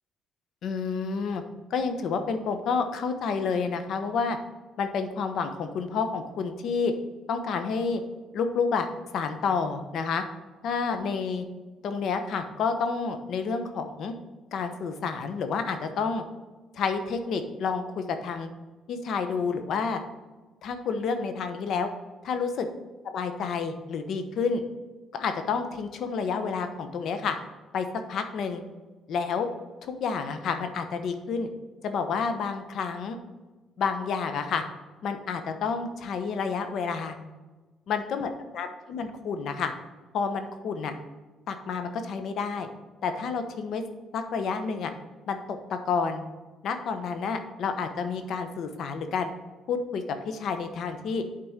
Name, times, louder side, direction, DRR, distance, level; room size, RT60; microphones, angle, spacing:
voice 1, 0.6-1.4 1.7-4.4 4.8-6.9 7.3-8.0 8.3-8.9 9.1-10.2 10.6-11.4 11.8-14.1 14.5-16.2 16.7-18.5 18.9-20.0 20.6-21.9 22.2-22.7 23.0-24.6 25.1-27.3 27.7-28.6 29.1-29.5 29.8-31.5 31.8-33.2 33.8-34.6 35.0-37.2 37.9-39.7 40.1-41.0 41.5-42.7 43.0-43.8 44.1-44.9 45.3-46.2 46.6-49.3 49.7-51.2, left 5 dB, 65° left, 8 dB, 1.0 m, -29 dB
7.6 x 4.3 x 6.5 m, 1.2 s
cardioid pair, 115°, 0 cm